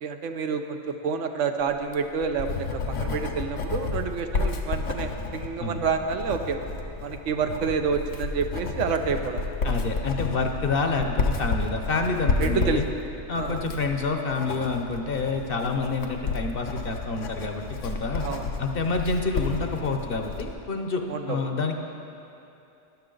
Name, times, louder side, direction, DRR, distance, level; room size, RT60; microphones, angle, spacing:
voice 1, 0.0-6.6 7.0-9.4 12.4-12.8 13.4-13.6 18.2-18.4 21.1-21.4, right 5 dB, 80° right, 6 dB, 1.0 m, -28 dB
Writing, 1.8-20.5, left 4 dB, 85° left, 1.2 m, -31 dB
voice 2, 9.6-12.8 13.3-18.3 18.6-21.8, left 3 dB, 55° left, 4 dB, 0.9 m, -28 dB
13.0 x 10.5 x 3.9 m, 2.8 s
omnidirectional pair, 1.2 m